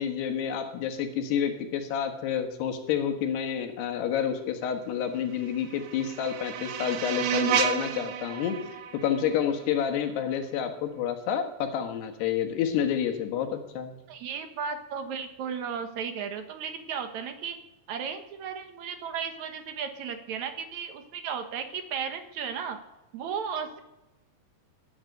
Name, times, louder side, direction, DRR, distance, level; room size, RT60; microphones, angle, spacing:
voice 1, 0.0-8.6 9.0-14.0, left 8 dB, 85° left, 5 dB, 3.5 m, -29 dB
sound 1, 5.3-10.3, right 9 dB, 90° right, 3.2 m, -32 dB
voice 2, 14.1-17.6 17.9-22.8 23.1-23.8, right 7 dB, 60° right, 7 dB, 2.1 m, -35 dB
17.0 x 9.8 x 6.5 m, 0.96 s
omnidirectional pair, 4.6 m